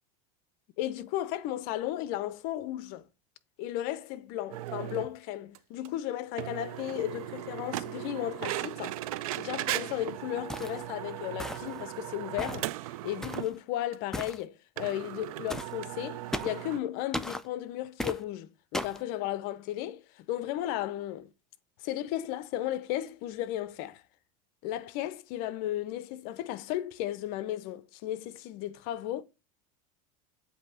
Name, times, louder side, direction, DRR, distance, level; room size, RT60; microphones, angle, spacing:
voice 1, 0.8-3.0 3.6-9.0 9.4-12.7 13.0-21.3 21.8-24.0 24.6-29.2, left 13 dB, 60° left, 0.6 m, -35 dB
sound 1, 4.5-5.1 5.5-5.6 5.9-6.0 6.4-13.5 13.9-14.0 14.2-14.3 14.8-16.8, right 15 dB, 80° right, 0.4 m, -37 dB
sound 2, 10.5-10.8 11.4-11.8 12.4-12.7 13.2-13.5 14.1-14.4 15.5-15.7 16.3-16.6 17.1-17.4 18.0-18.2 18.7-19.0, left 1 dB, 5° left, 0.4 m, -36 dB
8.0 x 2.8 x 5.5 m
supercardioid pair, 125°, 18 cm